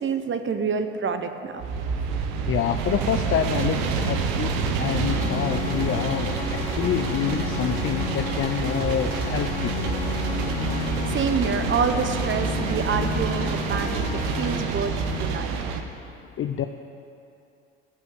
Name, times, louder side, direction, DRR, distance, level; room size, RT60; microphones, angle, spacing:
voice 1, 0.0-1.6 11.1-15.5, right 6 dB, 40° right, 8 dB, 1.2 m, -27 dB
sound 1, 1.6-15.8, right 5 dB, 75° right, 1.2 m, -28 dB
voice 2, 2.5-9.9 16.4-16.7, left 9 dB, 40° left, 7 dB, 0.7 m, -27 dB
sound 2, 5.1-15.4, left 5 dB, 70° left, 1.9 m, -32 dB
sound 3, 5.8-12.1, left 3 dB, 20° left, 1.2 m, -39 dB
14.5 x 5.7 x 9.5 m, 2.6 s
hypercardioid pair, 65°, 31 cm